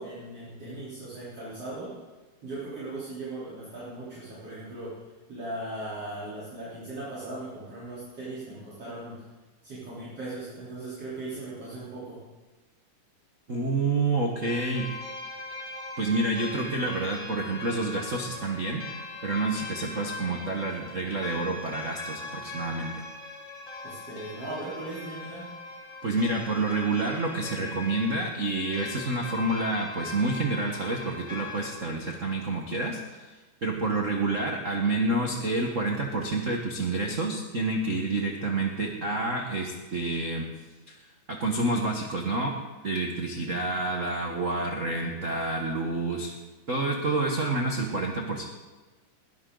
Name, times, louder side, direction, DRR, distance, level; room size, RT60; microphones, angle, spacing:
voice 1, 0.0-2.0 2.4-4.9 5.3-9.2 9.6-12.2 23.8-25.5, right 2 dB, 45° right, -10 dB, 4.7 m, -38 dB
voice 2, 13.5-14.8 16.0-18.8 19.2-22.9 26.0-40.5 40.9-42.5 42.8-46.4 46.7-48.5, right 2 dB, 80° right, 1 dB, 0.7 m, -28 dB
sound 1, 14.4-31.8, left 3 dB, 20° left, 2.9 m, -40 dB
21.0 x 13.0 x 3.9 m, 1.2 s
omnidirectional pair, 3.7 m